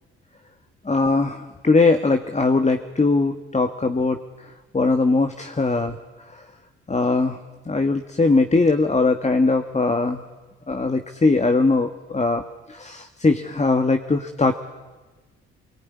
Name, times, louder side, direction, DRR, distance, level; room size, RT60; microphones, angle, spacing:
voice 1, 0.8-4.2 4.7-5.9 6.9-7.4 7.7-10.2 10.7-12.4 12.7-14.5, left 3 dB, 20° left, 7 dB, 1.6 m, -20 dB
23.5 x 22.0 x 9.7 m, 1.2 s
hypercardioid pair, 50°, 32 cm